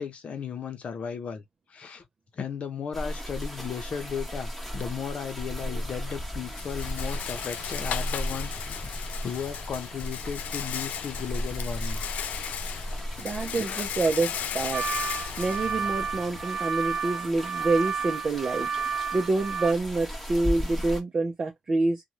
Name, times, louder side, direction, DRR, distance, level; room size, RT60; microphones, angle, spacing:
voice 1, 0.0-1.4 1.7-2.0 2.3-8.9 9.2-12.0 12.3-13.9, left 7 dB, 55° left, 0.7 m, -36 dB
sound 1, 2.9-21.0, equal, 5° left, 1.0 m, -36 dB
Rattle, 5.4-16.4, left 9 dB, 90° left, 0.3 m, -36 dB
voice 2, 13.2-14.8 15.4-18.7 19.1-22.0, right 3 dB, 35° right, 0.6 m, -27 dB
sound 2, 14.7-19.7, right 6 dB, 20° right, 1.2 m, -31 dB
2.7 x 2.2 x 3.0 m
cardioid pair, 115°, 3 cm